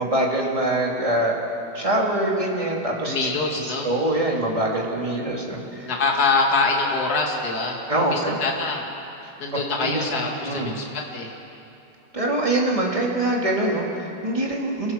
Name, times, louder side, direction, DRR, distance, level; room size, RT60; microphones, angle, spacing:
voice 1, 0.0-1.4 1.7-3.2 3.6-5.9 7.9-8.4 9.2-9.3 9.8-10.0 10.4-10.8 12.1-14.9, right 1 dB, 15° right, -2 dB, 3.0 m, -24 dB
voice 2, 3.0-3.9 5.8-7.8 8.1-8.8 9.4-10.8 11.1-11.3, left 3 dB, 55° left, 0 dB, 2.7 m, -24 dB
29.5 x 16.0 x 6.1 m, 2.8 s
omnidirectional pair, 2.0 m